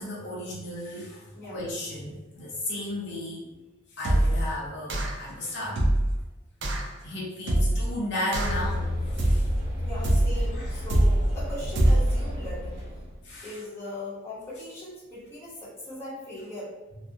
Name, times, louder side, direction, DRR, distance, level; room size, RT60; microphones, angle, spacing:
voice 1, 0.0-3.5 3.9-5.9 7.0-9.5 10.5-10.9 13.2-13.6, left 1 dB, 60° left, -5 dB, 0.6 m, -34 dB
sound 1, 4.0-4.5 4.9-5.3 5.8-6.2 6.6-6.9 7.5-7.9 8.3-8.7 9.2-9.6 10.0-10.5 10.9-11.3 11.8-12.2, right 1 dB, 65° right, 0.4 m, -23 dB
sound 2, 8.4-13.3, left 1 dB, 90° left, 1.0 m, -32 dB
voice 2, 9.8-12.8 13.4-16.8, left 1 dB, 15° left, -9 dB, 0.8 m, -39 dB
2.4 x 2.0 x 2.6 m, 1.1 s
head